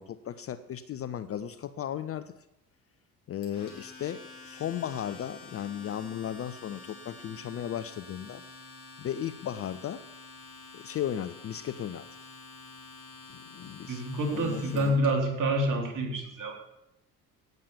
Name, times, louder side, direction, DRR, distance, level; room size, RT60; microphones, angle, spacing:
voice 1, 0.0-2.3 3.3-8.4 9.0-10.0 10.7-12.1 13.5-14.0 14.3-15.0, left 10 dB, 30° left, 12 dB, 0.6 m, -35 dB
Domestic sounds home sounds, 3.4-15.1, left 3 dB, 60° left, 4.5 m, -48 dB
voice 2, 13.9-16.6, right 1 dB, 40° right, 2 dB, 3.8 m, -28 dB
17.0 x 7.5 x 7.0 m, 0.89 s
figure-of-eight pair, 55°, 46 cm